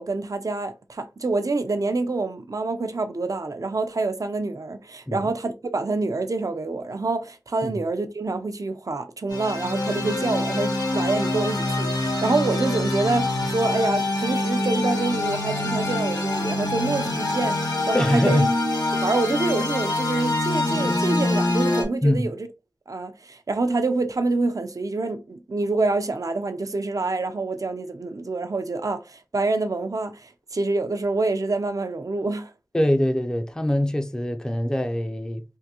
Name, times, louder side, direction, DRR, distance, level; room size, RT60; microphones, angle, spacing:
voice 1, 0.0-17.6 17.9-18.5 19.0-22.4 22.9-32.5, right 3 dB, 60° right, 0.5 m, -26 dB
sound 1, 9.3-21.8, left 2 dB, 75° left, 0.9 m, -25 dB
voice 2, 17.9-18.5 22.0-22.3 32.7-35.4, left 1 dB, 10° left, 0.4 m, -23 dB
3.6 x 2.6 x 2.8 m
wide cardioid pair, 45°, 7 cm